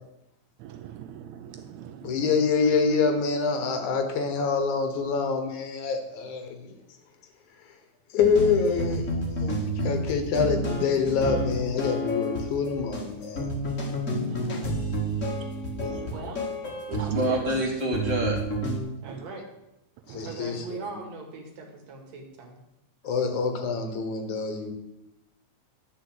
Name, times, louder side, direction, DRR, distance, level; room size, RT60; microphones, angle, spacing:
voice 1, 0.6-2.2 14.2-14.7 15.8-16.2 16.9-17.0 19.1-19.2 20.1-20.3, right 10 dB, 80° right, 7 dB, 1.8 m, -43 dB
voice 2, 2.0-6.7 8.1-9.1 9.4-13.6 14.5-14.6 20.1-20.8 23.0-24.7, left 5 dB, 75° left, 6 dB, 2.6 m, -26 dB
sound 1, 8.2-18.8, equal, 30° left, 1.7 m, -30 dB
voice 3, 16.1-16.4 17.0-17.4 19.0-19.4 20.2-22.6, right 4 dB, 60° right, 2 dB, 2.8 m, -39 dB
voice 4, 17.1-18.4, right 1 dB, 30° right, -1 dB, 2.0 m, -26 dB
10.5 x 4.8 x 7.9 m, 0.88 s
omnidirectional pair, 3.5 m